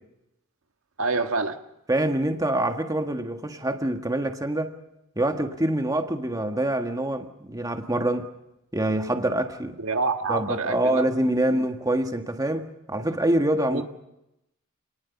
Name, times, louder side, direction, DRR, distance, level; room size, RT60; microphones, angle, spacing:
voice 1, 1.0-1.6 9.8-11.0 13.7-13.8, right 3 dB, 75° right, 1.6 m, -26 dB
voice 2, 1.9-4.8 5.1-8.3 8.7-9.8 10.3-13.8, right 1 dB, 15° right, 1.5 m, -25 dB
27.5 x 19.5 x 7.0 m
head